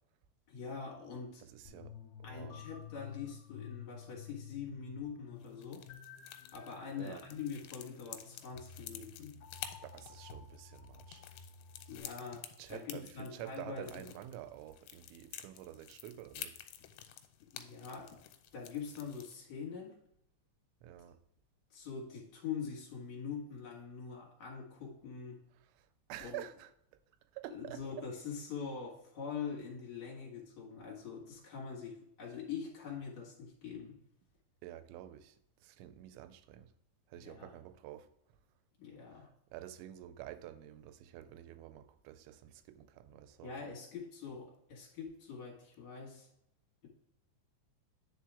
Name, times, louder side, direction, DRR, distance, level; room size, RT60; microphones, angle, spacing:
voice 1, 0.5-1.4 2.2-5.8 6.5-9.4 11.9-12.4 12.7-14.0 17.5-18.1 18.5-19.9 21.7-25.4 26.2-26.5 27.5-34.0 37.1-37.5 38.8-39.3 43.4-46.3, left 6 dB, 55° left, 2.2 m, -44 dB
voice 2, 1.5-1.9 2.3-2.6 7.0-7.2 9.8-11.3 12.6-16.6 20.8-21.2 26.1-26.7 27.3-28.1 34.6-35.3 35.6-36.7 37.1-38.1 39.5-43.5, right 13 dB, 85° right, 2.8 m, -49 dB
sound 1, 1.6-12.0, left 8 dB, 70° left, 1.9 m, -52 dB
sound 2, 5.4-19.3, left 11 dB, 90° left, 3.0 m, -51 dB
10.0 x 4.4 x 3.5 m
omnidirectional pair, 5.3 m